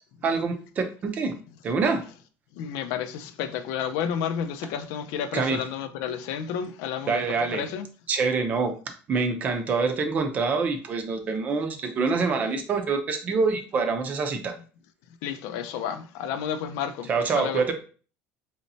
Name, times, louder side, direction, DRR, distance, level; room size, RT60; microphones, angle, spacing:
voice 1, 0.2-1.3 1.6-2.0 5.3-5.6 7.1-7.6 8.1-8.7 9.1-14.5 17.1-17.7, right 4 dB, 30° right, 0.6 m, -25 dB
voice 2, 2.6-7.2 7.5-7.9 15.2-17.1 17.3-17.6, left 8 dB, 80° left, 0.5 m, -31 dB
4.1 x 3.1 x 2.7 m
cardioid pair, 155°, 5 cm